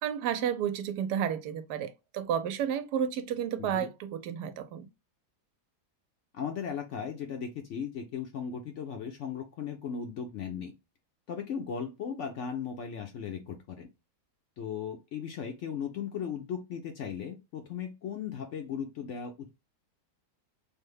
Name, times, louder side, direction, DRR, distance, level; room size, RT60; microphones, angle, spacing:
voice 1, 0.0-4.9, right 9 dB, 85° right, 1.1 m, -31 dB
voice 2, 6.3-10.7 11.3-13.9 14.6-19.5, left 7 dB, 65° left, 0.7 m, -37 dB
3.3 x 2.1 x 3.1 m
omnidirectional pair, 1.7 m